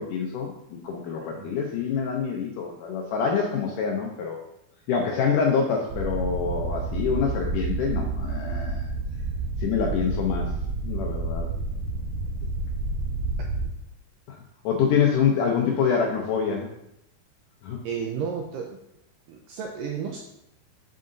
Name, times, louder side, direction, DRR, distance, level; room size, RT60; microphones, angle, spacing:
voice 1, 0.0-4.4 4.9-8.9 9.6-10.5 10.8-11.5 14.3-14.4 14.6-16.7 17.6-17.8, left 6 dB, 85° left, 0 dB, 1.8 m, -26 dB
sound 1, 5.9-13.7, right 3 dB, 75° right, 2.2 m, -29 dB
voice 2, 17.8-18.8 19.3-20.2, right 6 dB, 90° right, 1 dB, 2.0 m, -32 dB
7.6 x 7.5 x 2.6 m, 0.83 s
omnidirectional pair, 4.6 m